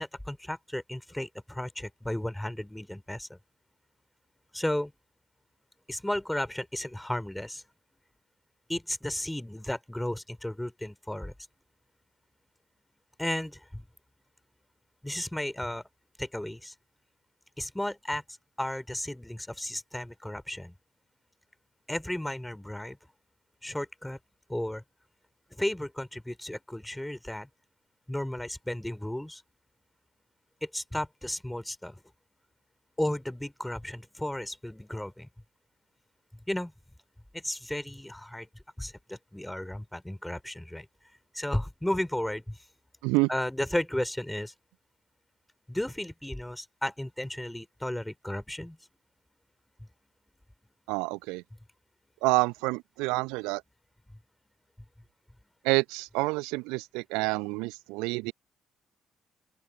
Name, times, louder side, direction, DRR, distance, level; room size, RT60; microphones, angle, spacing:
voice 1, 0.0-3.4 4.5-4.9 5.9-7.6 8.7-11.3 13.2-13.8 15.0-15.8 16.2-16.7 17.6-18.2 18.6-20.7 21.9-23.0 23.6-24.2 24.5-24.8 25.5-27.5 28.1-29.4 30.6-32.0 33.0-35.3 36.5-36.7 37.3-38.5 38.8-40.9 41.3-42.6 43.3-44.5 45.7-48.8, left 1 dB, 5° left, 3.9 m, -34 dB
voice 2, 50.9-51.4 52.2-53.6 55.6-58.3, right 26 dB, 70° right, 1.0 m, -28 dB
open air
figure-of-eight pair, 45°, 0 cm